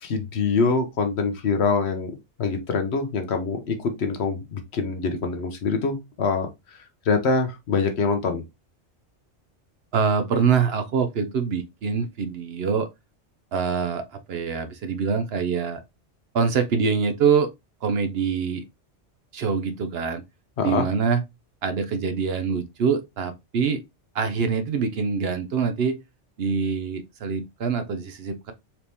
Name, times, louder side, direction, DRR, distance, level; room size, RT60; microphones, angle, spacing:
voice 1, 0.0-6.5 7.1-8.4 20.6-20.8, left 4 dB, 65° left, 1.1 m, -24 dB
voice 2, 9.9-12.9 13.5-14.0 14.3-15.8 16.3-17.5 17.8-18.6 19.3-20.2 20.6-21.2 21.6-23.8 24.1-26.0 26.4-28.5, right 6 dB, 65° right, 0.8 m, -24 dB
4.3 x 2.8 x 3.3 m
omnidirectional pair, 1.2 m